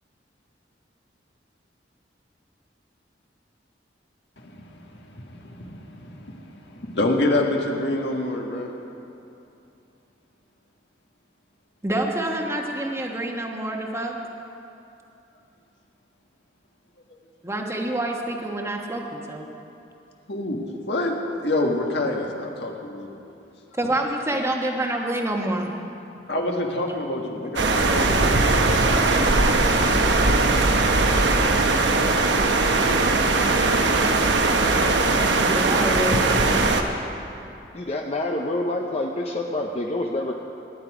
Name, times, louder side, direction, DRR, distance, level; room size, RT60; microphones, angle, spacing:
voice 1, 4.4-8.7 20.3-23.1 26.3-28.7, left 2 dB, 70° left, 1 dB, 1.7 m, -27 dB
voice 2, 11.8-14.2 17.4-19.5 20.7-20.8 23.7-25.7 26.9-27.0 27.4-27.5 31.3-31.4 35.4-36.5, right 1 dB, 15° right, 1 dB, 1.2 m, -27 dB
sound 1, 27.6-36.8, right 3 dB, 85° right, 1.0 m, -20 dB
voice 3, 37.7-40.3, left 1 dB, 35° left, 1 dB, 0.7 m, -27 dB
19.5 x 10.0 x 4.9 m, 2.8 s
head